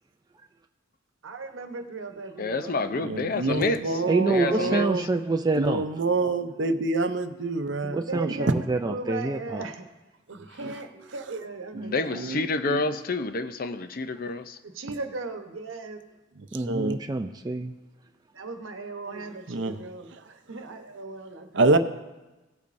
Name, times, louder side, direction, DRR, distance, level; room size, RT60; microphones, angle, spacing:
voice 1, 1.2-3.2 8.1-8.6 8.8-9.9 10.3-12.2 14.7-16.0 18.3-21.7, right 3 dB, 80° right, 1.1 m, -37 dB
voice 2, 2.4-4.8 11.9-14.6, left 3 dB, 45° left, 0.5 m, -29 dB
voice 3, 3.0-5.0 5.6-8.5 10.6-10.7 11.7-12.8 16.7-17.0 19.1-19.8 21.6-21.8, right 3 dB, 60° right, 0.6 m, -27 dB
voice 4, 4.1-5.8 7.8-9.6 16.5-17.7, right 2 dB, 20° right, 0.3 m, -27 dB
17.5 x 8.4 x 2.6 m
head